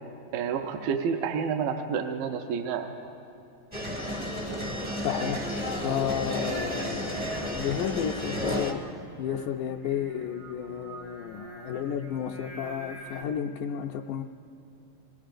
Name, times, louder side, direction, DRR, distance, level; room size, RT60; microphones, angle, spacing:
voice 1, 0.3-2.9, right 6 dB, 85° right, 4 dB, 2.3 m, -29 dB
sound 1, 3.7-8.7, equal, 10° right, 0.4 m, -32 dB
voice 2, 5.0-14.2, left 9 dB, 80° left, 0 dB, 1.9 m, -32 dB
Singing, 8.2-13.2, right 2 dB, 65° right, 1.0 m, -46 dB
25.0 x 20.5 x 2.5 m, 2.7 s
omnidirectional pair, 3.8 m